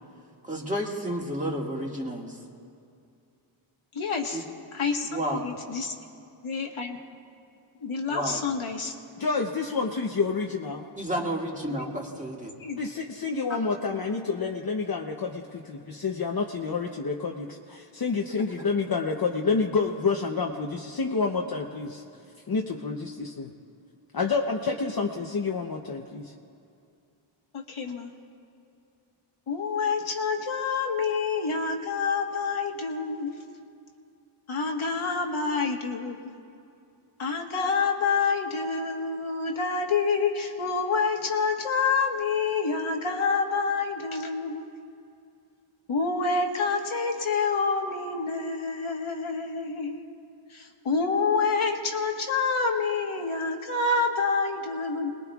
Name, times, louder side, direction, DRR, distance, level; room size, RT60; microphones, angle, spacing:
voice 1, 0.4-2.4 4.3-4.4 5.0-5.5 8.1-8.4 11.0-12.5 18.3-18.7, right 1 dB, 15° right, -2 dB, 1.9 m, -31 dB
voice 2, 3.9-4.4 4.7-5.1 5.4-5.9 6.4-7.0 7.8-8.9 11.7-11.9 12.6-12.9 27.5-28.1 29.5-33.3 34.5-36.3 37.2-44.6 45.9-50.0 50.5-55.1, left 4 dB, 75° left, 1 dB, 1.5 m, -27 dB
voice 3, 9.2-10.9 12.8-22.0 22.5-23.5 24.1-26.3, left 4 dB, 45° left, 1 dB, 0.8 m, -28 dB
27.0 x 20.5 x 2.4 m, 2.5 s
wide cardioid pair, 130°, 49 cm